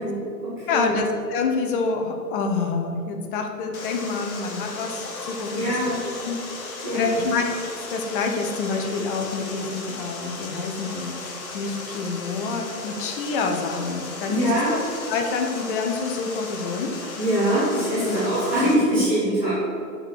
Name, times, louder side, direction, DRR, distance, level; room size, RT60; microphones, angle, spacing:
voice 1, 0.0-1.0 5.5-6.0 6.8-7.1 14.2-14.7 17.2-19.5, right 1 dB, 5° left, -13 dB, 0.4 m, -23 dB
voice 2, 0.7-5.8 6.2-6.4 6.9-7.5 7.9-14.8 15.1-16.9 18.0-18.2, left 4 dB, 30° left, 3 dB, 1.0 m, -27 dB
Water, 3.7-18.7, left 3 dB, 55° left, 1.8 m, -36 dB
6.6 x 6.4 x 6.4 m, 2.5 s
figure-of-eight pair, 125°, 49 cm